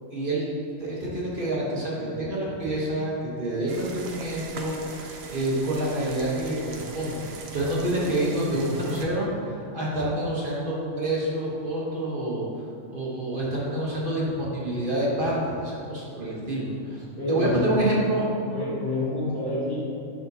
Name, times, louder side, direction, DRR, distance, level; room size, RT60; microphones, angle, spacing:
voice 1, 0.1-0.5 0.8-12.5 12.9-18.2, right 1 dB, 40° right, -6 dB, 1.4 m, -28 dB
sound 1, 3.7-9.0, right 3 dB, 60° right, 0.8 m, -41 dB
voice 2, 8.5-9.3 16.9-17.9 18.4-19.8, left 2 dB, 80° left, -12 dB, 2.2 m, -30 dB
11.0 x 4.2 x 2.8 m, 2.6 s
omnidirectional pair, 1.4 m